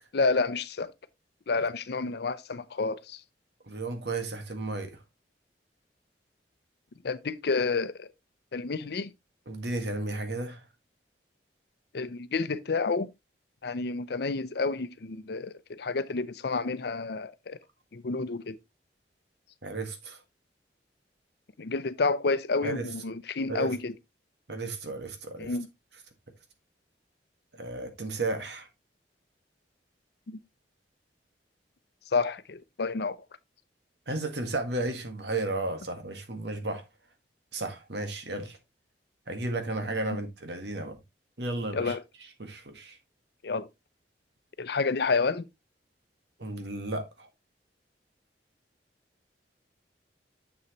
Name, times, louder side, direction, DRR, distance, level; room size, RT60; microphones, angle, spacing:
voice 1, 0.1-0.9 1.5-3.2 7.0-8.1 8.5-9.1 11.9-13.1 13.6-17.6 17.9-18.6 21.6-23.9 25.4-25.7 30.3-30.4 32.1-33.2 40.0-40.2 41.7-42.0 43.4-43.7 44.6-45.5, left 4 dB, 65° left, 0.6 m, -29 dB
voice 2, 3.7-5.0 9.5-10.6 19.6-20.2 22.6-22.9 23.5-23.7 24.5-25.5 27.6-28.7 34.1-36.8 37.5-38.6 39.3-41.0 41.4-41.9 42.4-43.0 46.4-47.3, right 2 dB, 70° right, 1.8 m, -33 dB
7.2 x 6.8 x 3.0 m
head